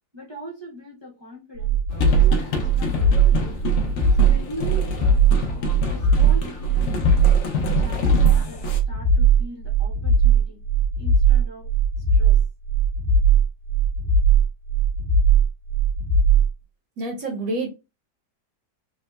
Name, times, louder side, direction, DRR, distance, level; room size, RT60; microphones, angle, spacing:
voice 1, 0.1-1.8 2.2-3.6 4.1-4.9 5.8-7.1 7.8-10.6 11.0-11.7 12.1-12.4, equal, 45° right, -4 dB, 0.3 m, -39 dB
sound 1, 1.6-16.5, right 5 dB, 90° right, 1.3 m, -19 dB
sound 2, 1.9-8.8, left 4 dB, 85° left, 0.6 m, -28 dB
voice 2, 17.0-17.7, right 2 dB, 65° right, 2 dB, 0.9 m, -27 dB
3.6 x 2.1 x 2.3 m, 0.27 s
omnidirectional pair, 1.9 m